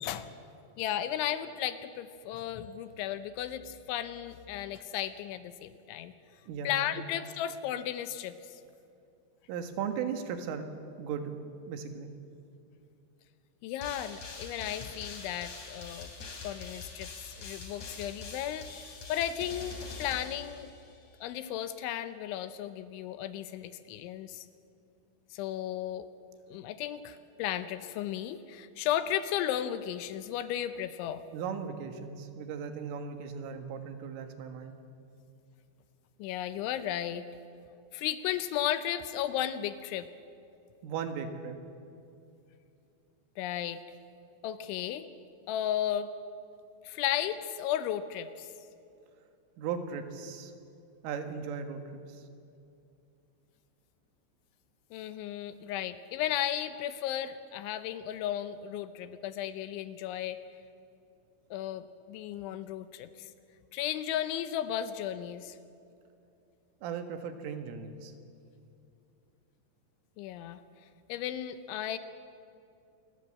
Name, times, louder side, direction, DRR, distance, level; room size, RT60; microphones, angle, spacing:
voice 1, 0.0-0.3 0.8-6.1 6.6-8.3 13.6-16.1 16.4-17.1 17.4-18.7 19.1-20.7 21.2-24.5 25.3-26.1 26.5-31.2 36.2-37.2 37.9-40.1 43.4-43.8 44.4-45.0 45.5-46.1 46.8-48.5 54.9-60.4 61.5-63.3 63.7-65.6 70.2-70.6 71.1-72.0, left 11 dB, 80° left, 11 dB, 3.0 m, -34 dB
voice 2, 6.5-7.1 9.5-10.7 11.0-11.4 11.7-12.1 31.3-34.7 40.8-41.6 49.6-50.5 51.0-51.8 52.1-52.3 66.8-68.1, right 7 dB, 80° right, 7 dB, 4.2 m, -37 dB
sound 1, 13.8-21.1, left 4 dB, 40° left, 3.9 m, -44 dB
26.5 x 21.5 x 7.7 m, 2.6 s
omnidirectional pair, 5.8 m